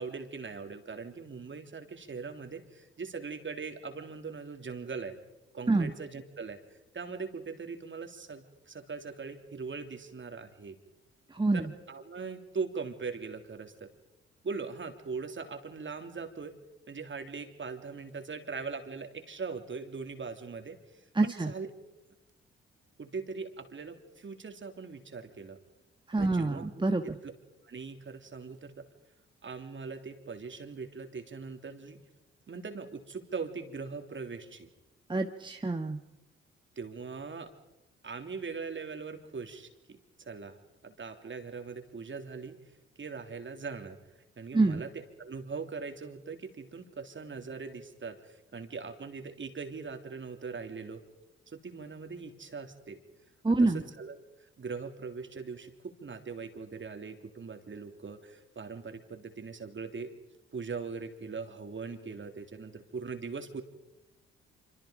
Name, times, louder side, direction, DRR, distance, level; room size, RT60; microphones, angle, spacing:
voice 1, 0.0-5.1 5.5-6.6 6.9-10.8 11.5-13.9 14.4-16.5 16.9-20.8 21.2-21.7 23.0-25.6 26.2-26.7 27.0-27.3 27.6-28.8 29.4-32.0 32.5-34.7 36.8-37.5 38.0-40.6 40.8-42.6 43.0-44.0 44.4-51.0 51.5-53.0 53.6-54.2 54.6-60.1 60.5-63.6, right 5 dB, 40° right, 6 dB, 3.2 m, -40 dB
voice 2, 21.2-21.5 26.1-27.0 35.1-36.0 44.5-44.8 53.4-53.8, right 3 dB, 15° right, 4 dB, 1.6 m, -26 dB
26.5 x 26.0 x 5.1 m, 0.97 s
hypercardioid pair, 45°, 30 cm